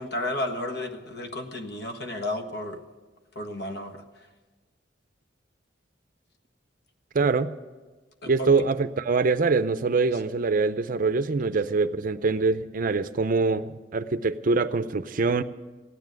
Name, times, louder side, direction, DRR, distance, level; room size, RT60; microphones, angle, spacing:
voice 1, 0.0-2.8 3.3-4.0 8.2-8.5 10.1-10.2, left 1 dB, 60° left, 5 dB, 1.5 m, -32 dB
voice 2, 7.1-7.6 8.3-15.4, right 4 dB, 45° right, 13 dB, 0.5 m, -24 dB
15.5 x 9.8 x 9.3 m, 1.3 s
head